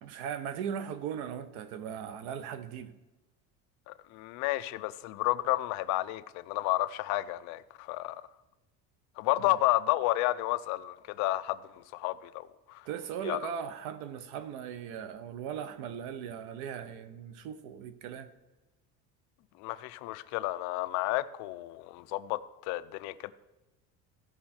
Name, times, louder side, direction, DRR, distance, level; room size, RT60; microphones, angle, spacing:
voice 1, 0.0-2.9 9.4-9.6 12.8-18.3, right 8 dB, 85° right, 1.0 m, -38 dB
voice 2, 3.9-8.1 9.2-12.9 13.2-13.4 19.6-23.3, left 17 dB, 60° left, 0.5 m, -31 dB
16.0 x 5.6 x 4.4 m
cardioid pair, 175°, 31 cm